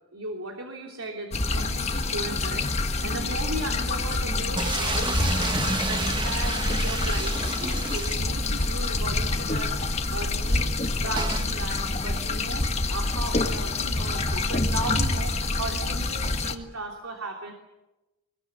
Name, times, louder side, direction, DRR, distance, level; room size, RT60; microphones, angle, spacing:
voice 1, 0.1-17.5, right 2 dB, 80° right, 2 dB, 3.2 m, -36 dB
sound 1, 1.3-16.5, left 2 dB, 30° left, 1.5 m, -27 dB
sound 2, 4.6-8.7 9.1-9.2 9.4-9.5 11.2-11.5, right 3 dB, 20° right, 1.5 m, -31 dB
24.0 x 22.0 x 9.5 m, 1.0 s
head